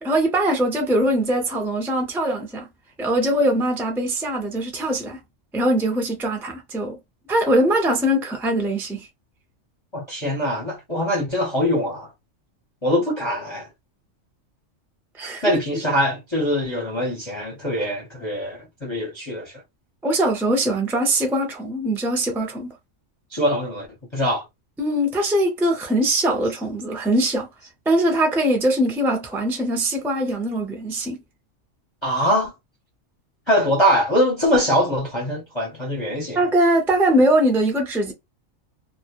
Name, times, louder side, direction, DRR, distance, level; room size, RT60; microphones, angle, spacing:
voice 1, 0.0-2.7 3.0-5.2 5.5-7.0 7.3-9.1 12.9-13.0 15.2-15.6 20.0-22.7 24.8-27.5 27.9-31.2 36.3-38.1, right 1 dB, 5° right, 0.3 m, -21 dB
voice 2, 9.9-12.1 12.8-13.7 15.4-19.5 23.3-23.9 24.1-24.4 32.0-32.5 33.5-36.4, equal, 30° left, 0.6 m, -23 dB
2.3 x 2.1 x 2.8 m
omnidirectional pair, 1.4 m